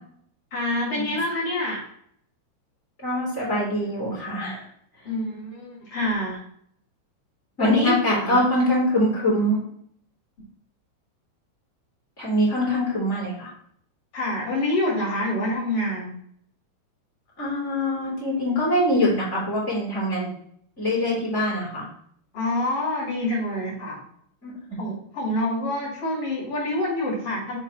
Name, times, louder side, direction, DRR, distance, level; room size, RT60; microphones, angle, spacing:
voice 1, 0.5-1.8 5.0-6.4 7.6-8.4 14.1-16.1 22.3-24.0 24.8-27.6, left 1 dB, 35° left, -4 dB, 2.7 m, -27 dB
voice 2, 3.0-4.6 7.6-9.6 12.2-13.5 17.4-20.3 20.8-21.8 24.4-24.8, left 1 dB, 20° left, -5 dB, 2.2 m, -23 dB
6.4 x 4.5 x 4.3 m, 0.65 s
omnidirectional pair, 5.5 m